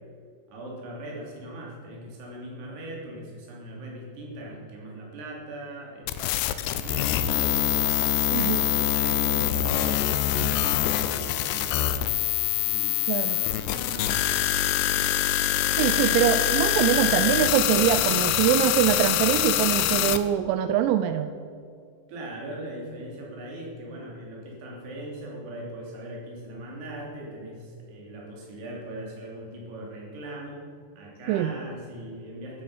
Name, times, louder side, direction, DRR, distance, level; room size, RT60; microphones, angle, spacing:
voice 1, 0.5-7.8 8.7-12.2 12.6-14.3 14.6-15.1 22.1-30.7 31.0-32.6, right 1 dB, 65° right, -3 dB, 5.0 m, -40 dB
sound 1, 6.1-20.2, left 12 dB, 80° left, 2.5 m, -24 dB
voice 2, 8.3-8.7 13.1-13.4 15.8-21.3 31.3-31.5, right 11 dB, 90° right, 10 dB, 3.0 m, -23 dB
14.0 x 9.6 x 7.1 m, 2.2 s
omnidirectional pair, 5.2 m